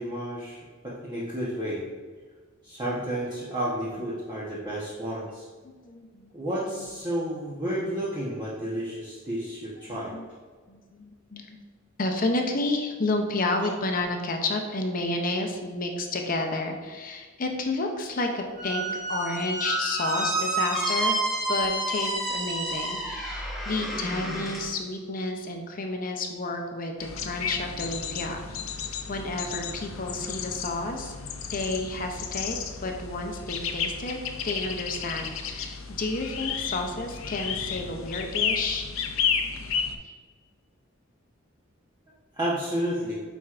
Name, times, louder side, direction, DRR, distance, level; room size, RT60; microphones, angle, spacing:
voice 1, 0.0-1.8 2.6-5.5 6.3-10.1 42.4-43.2, right 1 dB, 20° right, -8 dB, 1.0 m, -31 dB
voice 2, 5.8-6.3 9.9-10.2 10.7-11.6 12.0-18.8 19.1-21.2 21.5-27.0 27.2-28.4 29.1-31.1 31.5-32.6 32.8-34.2 34.4-38.8, left 2 dB, 45° left, 4 dB, 0.7 m, -30 dB
Squeak, 18.6-24.6, right 1 dB, ahead, 1.1 m, -29 dB
sound 1, 27.0-39.9, left 6 dB, 85° left, 0.6 m, -32 dB
8.8 x 4.5 x 2.5 m, 1.5 s
head